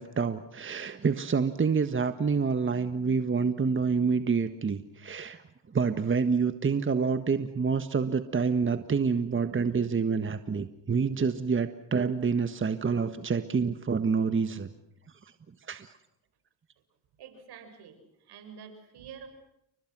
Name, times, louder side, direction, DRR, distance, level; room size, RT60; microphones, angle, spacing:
voice 1, 0.0-5.4 5.7-14.7 15.7-15.9, right 5 dB, 30° right, 10 dB, 1.5 m, -27 dB
voice 2, 17.1-19.3, right 7 dB, 70° right, 7 dB, 6.4 m, -48 dB
30.0 x 24.5 x 6.2 m, 0.80 s
supercardioid pair, 65°, 40 cm